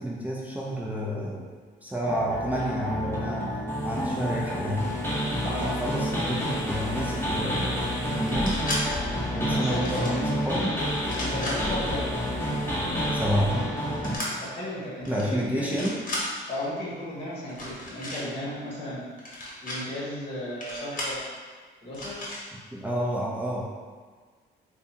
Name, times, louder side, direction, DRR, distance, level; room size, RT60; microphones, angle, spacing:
voice 1, 0.0-1.4 1.8-4.8 5.4-7.8 8.2-8.6 9.3-10.7 13.1-13.5 15.1-16.0 22.7-23.6, equal, 5° right, -5 dB, 0.6 m, -29 dB
sound 1, 2.0-14.2, equal, 10° left, 0.9 m, -29 dB
sound 2, 8.2-8.8 9.6-10.2 11.0-11.6 14.0-14.3 15.0-15.3 15.6-16.2 17.5-18.2 19.2-19.8 20.6-21.2 21.9-22.4, left 1 dB, 45° left, 1.1 m, -34 dB
voice 2, 9.4-10.2 11.2-12.2 14.4-15.6 16.5-19.0 19.6-21.2 21.8-22.3, left 1 dB, 30° left, -8 dB, 1.4 m, -34 dB
5.0 x 2.2 x 2.8 m, 1.5 s
cardioid pair, 90°, 20 cm